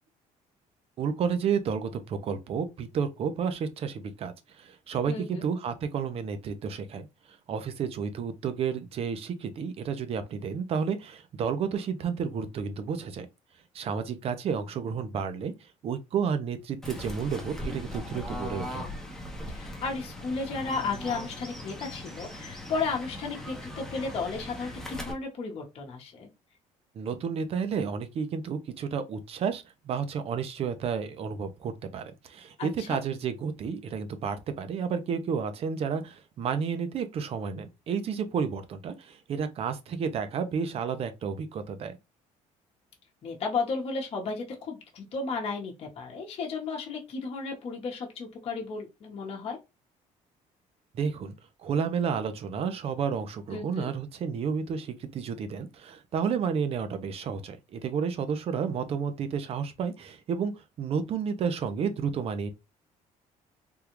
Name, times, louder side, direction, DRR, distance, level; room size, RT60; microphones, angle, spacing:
voice 1, 1.0-7.1 7.5-13.3 13.7-15.5 15.8-18.8 27.0-42.0 50.9-51.3 51.6-60.5 60.8-62.5, right 6 dB, 45° right, 0.6 m, -31 dB
voice 2, 5.1-5.5 19.5-26.3 32.6-33.0 43.2-49.6 53.5-53.9, left 4 dB, 45° left, 1.0 m, -34 dB
Fowl / Bird, 16.8-25.1, left 1 dB, 5° left, 0.8 m, -39 dB
3.6 x 2.3 x 3.0 m
cardioid pair, 135°, 14 cm